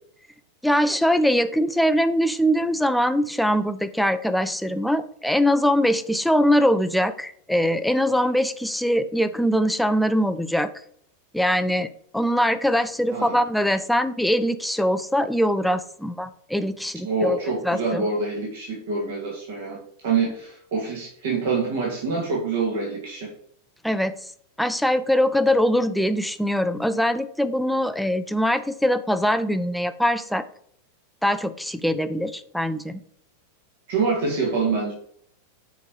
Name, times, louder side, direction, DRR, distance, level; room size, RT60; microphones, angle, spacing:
voice 1, 0.6-10.7 11.3-17.4 17.6-18.1 23.8-24.2 24.6-30.4 31.2-33.0, equal, ahead, 11 dB, 0.6 m, -22 dB
voice 2, 13.1-13.4 17.0-23.3 33.9-34.9, right 4 dB, 55° right, -3 dB, 2.5 m, -26 dB
8.2 x 5.1 x 4.9 m, 0.64 s
figure-of-eight pair, 90°, 0 cm